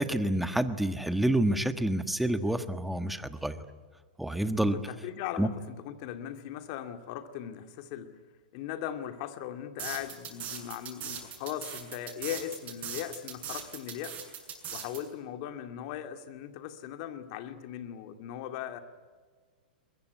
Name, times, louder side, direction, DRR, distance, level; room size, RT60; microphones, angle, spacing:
voice 1, 0.0-3.6 4.2-4.8 5.4-5.5, right 1 dB, ahead, 11 dB, 1.4 m, -28 dB
voice 2, 4.6-8.1 8.5-14.3 14.7-18.8, left 10 dB, 50° left, 8 dB, 2.3 m, -39 dB
sound 1, 9.8-15.0, right 8 dB, 30° right, 7.5 m, -39 dB
23.0 x 21.5 x 9.6 m, 1.5 s
hypercardioid pair, 115°, 5 cm